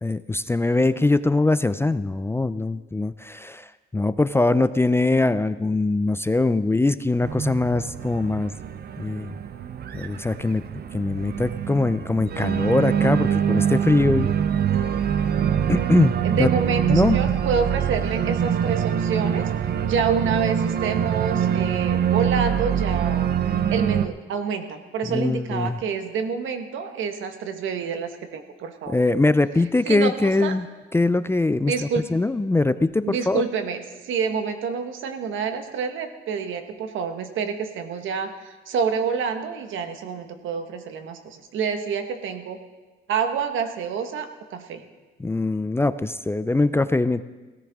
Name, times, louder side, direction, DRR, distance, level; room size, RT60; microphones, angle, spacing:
voice 1, 0.0-3.7 3.9-8.5 9.0-9.4 9.9-10.6 10.9-14.3 15.7-16.5 16.9-17.2 25.1-25.8 28.9-30.7 30.9-31.7 32.1-33.4 45.2-47.2, left 2 dB, 10° left, 13 dB, 0.4 m, -22 dB
Organ, 7.2-24.1, right 8 dB, 55° right, 0.7 m, -24 dB
voice 2, 16.2-19.5 19.8-29.0 29.8-30.5 31.7-32.1 33.0-42.6 43.1-44.8, right 6 dB, 80° right, 7 dB, 1.4 m, -28 dB
17.0 x 13.5 x 3.6 m, 1.2 s
cardioid pair, 90°, 20 cm